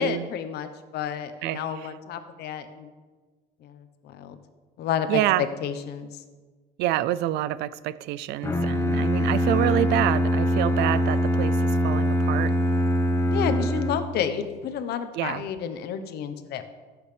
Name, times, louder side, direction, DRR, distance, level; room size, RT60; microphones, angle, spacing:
voice 1, 0.0-2.9 3.6-4.4 4.8-6.1 13.2-16.6, left 8 dB, 75° left, 9 dB, 1.0 m, -30 dB
voice 2, 1.4-1.9 5.1-5.5 6.8-12.6 15.1-15.4, right 14 dB, 85° right, 18 dB, 0.4 m, -27 dB
Bowed string instrument, 8.4-14.3, equal, 15° left, 0.9 m, -23 dB
15.0 x 8.0 x 3.4 m, 1.4 s
cardioid pair, 110°, 17 cm